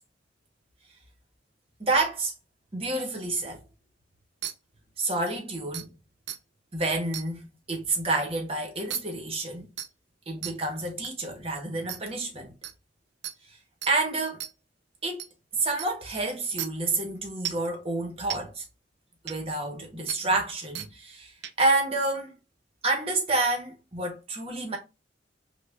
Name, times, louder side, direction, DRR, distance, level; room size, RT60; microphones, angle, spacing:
voice 1, 1.8-2.3 2.7-3.6 5.0-5.9 6.7-9.7 10.3-12.5 13.9-14.5 15.0-15.2 15.5-18.6 19.2-22.3 22.8-24.8, right 2 dB, 30° right, 1.0 m, -29 dB
sound 1, 4.4-4.5 5.3-5.4 5.7-5.9 6.3-6.4 7.1-7.3 8.9-9.0 9.8-9.9 10.4-10.5 11.0-11.1 11.9-12.0 12.6-12.7 13.2-13.4 13.8-13.9 14.4-14.5 15.2-15.3 15.8-15.9 16.6-16.7 17.5-17.7 18.3-18.4 19.3-19.4 20.1-20.2 20.8-20.9 21.4-21.7, right 10 dB, 65° right, 0.4 m, -34 dB
5.4 x 2.4 x 2.4 m
head